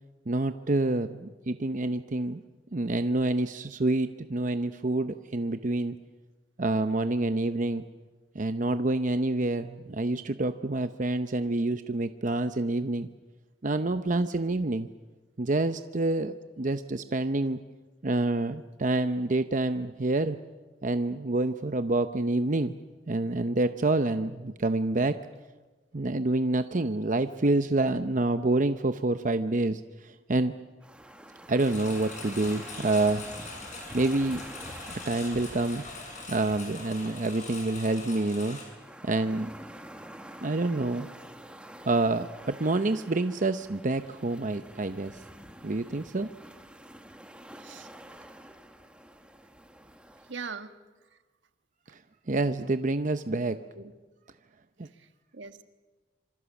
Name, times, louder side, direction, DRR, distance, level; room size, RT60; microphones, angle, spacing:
voice 1, 0.3-2.4 2.7-6.0 6.6-7.8 8.3-13.1 13.6-14.9 15.4-17.6 18.0-20.4 20.8-22.7 23.1-25.2 25.9-30.5 31.5-33.3 33.9-34.4 34.9-35.8 36.3-38.6 39.0-39.5 40.4-41.1 41.8-45.1 45.6-46.3 52.3-53.6 54.8-54.9, right 2 dB, 45° right, 9 dB, 0.7 m, -27 dB
sound 1, 30.8-50.3, right 1 dB, 5° right, 1.5 m, -48 dB
Engine, 31.6-38.6, left 3 dB, 40° left, 7.4 m, -42 dB
voice 2, 47.6-47.9 50.3-50.7 51.1-51.2 53.5-53.9 54.9-55.6, right 5 dB, 75° right, 9 dB, 1.5 m, -42 dB
26.5 x 25.0 x 7.2 m, 1.3 s
head